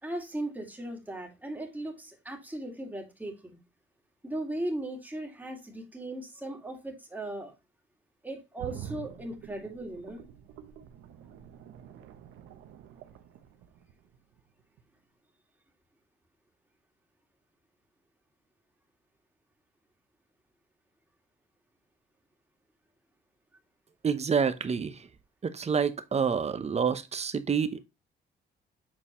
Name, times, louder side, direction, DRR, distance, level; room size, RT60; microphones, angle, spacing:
voice 1, 0.0-3.6 4.2-7.6 8.2-10.2, right 1 dB, 10° right, 2.3 m, -37 dB
sound 1, 8.6-14.4 14.8-14.9, right 9 dB, 85° right, 0.9 m, -47 dB
voice 2, 24.0-24.9 25.4-27.8, right 6 dB, 35° right, 0.8 m, -28 dB
7.6 x 4.3 x 3.0 m
cardioid pair, 90°, 20 cm